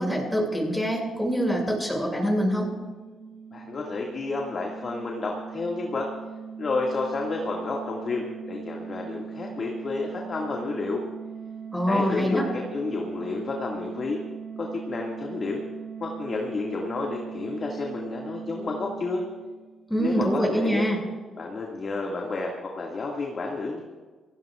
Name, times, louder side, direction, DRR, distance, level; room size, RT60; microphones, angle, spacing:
voice 1, 0.0-2.7 11.7-12.5 19.9-21.0, equal, 5° left, -1 dB, 6.6 m, -25 dB
sound 1, 2.5-20.0, right 6 dB, 55° right, 4.1 m, -40 dB
voice 2, 3.5-6.1 6.6-11.0 11.9-14.2 14.6-15.6 16.0-19.2 20.0-20.8 21.4-23.8, left 3 dB, 45° left, -1 dB, 2.1 m, -30 dB
27.5 x 17.0 x 2.5 m, 1.4 s
cardioid pair, 90°, 0 cm